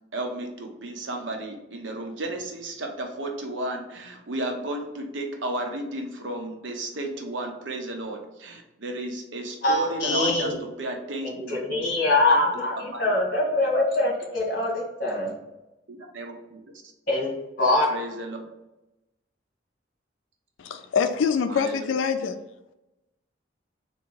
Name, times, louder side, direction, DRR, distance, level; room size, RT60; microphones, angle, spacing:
voice 1, 0.1-11.8 12.8-13.1 15.9-16.6 17.9-18.4 21.5-21.9, right 1 dB, 75° right, 2 dB, 0.8 m, -33 dB
voice 2, 9.6-10.5 11.2-15.3 17.1-17.3 17.6-17.8, left 2 dB, 50° left, -2 dB, 1.5 m, -23 dB
voice 3, 20.6-22.4, left 6 dB, 85° left, 8 dB, 0.4 m, -25 dB
3.6 x 2.8 x 4.5 m, 0.96 s
head